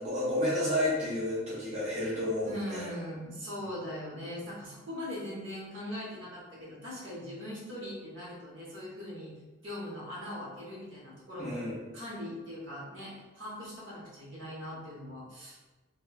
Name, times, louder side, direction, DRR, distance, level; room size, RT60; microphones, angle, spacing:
voice 1, 0.0-2.9 11.4-11.7, left 1 dB, 30° right, -10 dB, 0.7 m, -31 dB
voice 2, 2.4-9.3 9.6-11.7 11.9-15.6, left 1 dB, 65° right, -6 dB, 0.9 m, -41 dB
3.0 x 2.1 x 2.2 m, 1.2 s
head